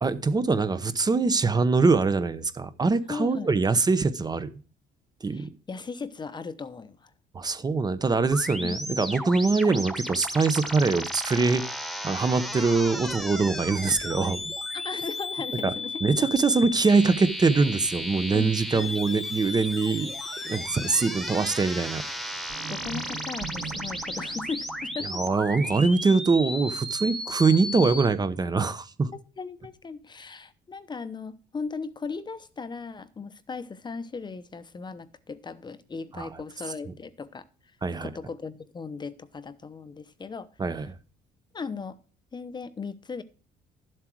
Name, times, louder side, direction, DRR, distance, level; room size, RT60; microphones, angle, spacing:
voice 1, 0.0-4.5 5.2-5.5 7.3-11.7 12.0-14.4 15.6-15.7 16.0-20.1 20.5-22.0 25.1-29.1 36.1-36.3 37.8-38.1 40.6-40.9, right 4 dB, 25° right, 0.9 m, -23 dB
voice 2, 3.1-3.5 5.3-7.1 8.6-8.8 14.7-16.0 18.3-19.0 22.7-25.2 29.1-37.4 38.0-40.5 41.5-41.9 42.3-43.2, left 4 dB, 25° left, 0.9 m, -37 dB
sound 1, 8.3-28.0, left 1 dB, ahead, 1.3 m, -34 dB
sound 2, 22.5-26.7, right 8 dB, 65° right, 1.2 m, -42 dB
12.0 x 7.7 x 4.6 m
cardioid pair, 110°, 17 cm